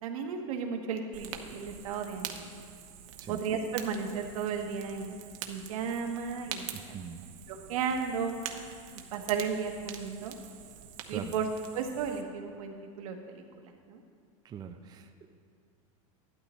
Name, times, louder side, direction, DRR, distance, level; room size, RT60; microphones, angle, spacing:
voice 1, 0.0-2.5 3.3-5.1 5.5-6.7 7.5-8.4 9.1-10.3 11.1-11.5 11.7-14.0, right 6 dB, 85° right, 3 dB, 1.3 m, -34 dB
Fire, 1.1-12.2, right 9 dB, 65° right, 0.9 m, -45 dB
voice 2, 6.7-7.3 11.1-11.3 14.4-15.3, right 8 dB, 20° right, 5 dB, 0.5 m, -42 dB
12.0 x 11.0 x 3.1 m, 2.4 s
supercardioid pair, 140°, 18 cm